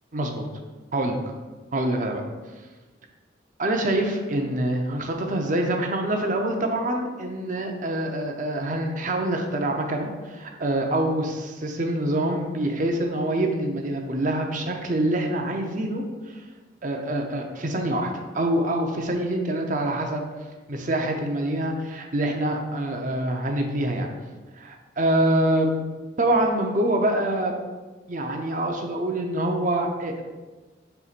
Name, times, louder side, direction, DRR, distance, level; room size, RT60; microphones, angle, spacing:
voice 1, 0.1-0.4 0.9-1.2 1.7-2.2 3.6-16.4 16.8-20.3 20.7-24.1 24.6-25.8 26.2-27.5 28.1-30.2, right 1 dB, 40° right, 3 dB, 0.7 m, -25 dB
6.8 x 5.7 x 2.5 m, 1.3 s
head